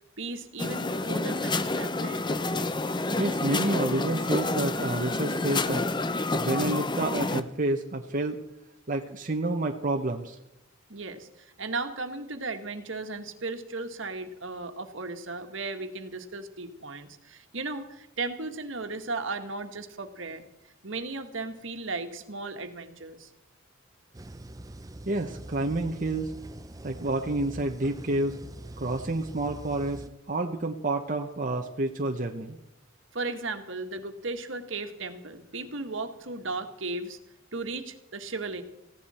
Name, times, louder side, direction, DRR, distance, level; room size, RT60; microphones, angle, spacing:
voice 1, 0.2-2.3 10.9-20.4 20.8-23.3 33.1-37.2 37.5-38.6, right 3 dB, 65° right, 7 dB, 1.7 m, -36 dB
sound 1, 0.6-7.4, left 2 dB, 20° left, 0.7 m, -29 dB
voice 2, 3.2-5.9 6.3-8.4 8.9-10.4 25.1-26.3 26.8-28.4 28.8-32.6, right 2 dB, 40° right, 3 dB, 1.0 m, -29 dB
sound 2, 24.1-30.1, right 1 dB, 15° right, 0.5 m, -43 dB
19.0 x 16.0 x 4.3 m, 0.83 s
head